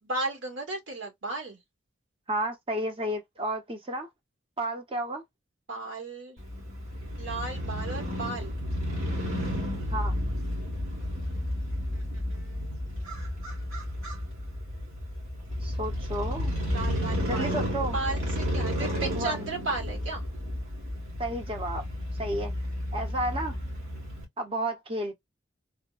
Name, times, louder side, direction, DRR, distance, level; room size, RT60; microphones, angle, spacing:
voice 1, 0.0-1.6 5.7-6.4 7.2-8.6 11.9-12.8 16.7-17.6 17.9-20.3, right 3 dB, 70° right, 1.3 m, -35 dB
voice 2, 2.3-4.1 4.6-5.2 9.9-10.1 15.6-16.5 17.2-18.0 18.8-19.5 21.2-21.8 22.2-22.5 22.9-23.6 24.4-25.1, right 1 dB, 25° right, 0.6 m, -32 dB
Crow / Motorcycle, 6.4-24.2, equal, 90° right, 1.7 m, -32 dB
3.4 x 2.1 x 2.3 m
head